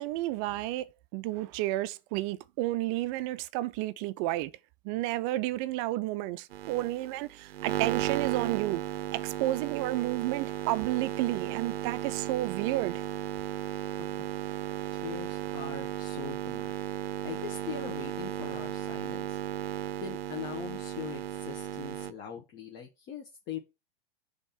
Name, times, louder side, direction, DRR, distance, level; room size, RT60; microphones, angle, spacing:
voice 1, 0.0-4.5 4.8-8.8 9.1-13.0, right 16 dB, 35° right, 0.4 m, -31 dB
sound 1, 6.5-22.1, right 12 dB, 90° right, 0.5 m, -35 dB
voice 2, 14.9-16.7 17.2-19.4 20.0-23.6, left 8 dB, 40° left, 1.2 m, -41 dB
5.2 x 3.6 x 5.7 m
hypercardioid pair, 120°, 29 cm